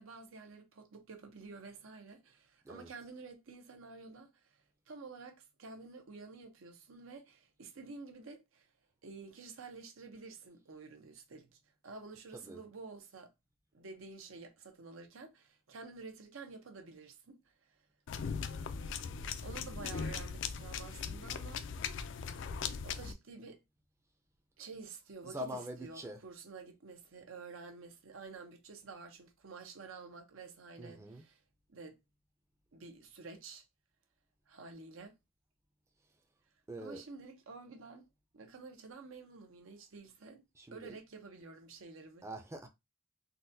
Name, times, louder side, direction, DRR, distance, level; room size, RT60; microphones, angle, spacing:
voice 1, 0.0-4.3 4.9-8.7 9.0-13.3 13.7-17.5 19.4-21.8 22.8-23.6 24.6-25.5 25.8-31.3 31.7-32.0 32.7-33.6 34.5-35.1 36.8-38.1 38.3-42.2, right 4 dB, 90° right, 0.7 m, -50 dB
sound 1, 18.1-23.1, left 6 dB, 65° left, 0.3 m, -39 dB
voice 2, 25.2-26.2 30.8-31.2 36.7-37.0 40.6-41.0 42.2-42.7, equal, 15° right, 0.4 m, -44 dB
3.9 x 2.2 x 2.6 m
head